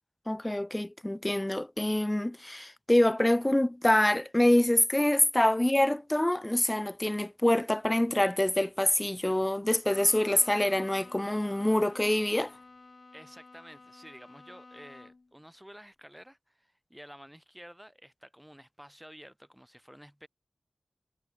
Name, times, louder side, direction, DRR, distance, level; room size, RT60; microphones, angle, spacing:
voice 1, 0.3-12.5, left 1 dB, 20° left, 0.4 m, -26 dB
Bowed string instrument, 9.8-15.3, left 3 dB, 60° left, 1.7 m, -52 dB
voice 2, 13.1-20.3, equal, 5° right, 0.8 m, -51 dB
wide cardioid pair, 50°, 0 cm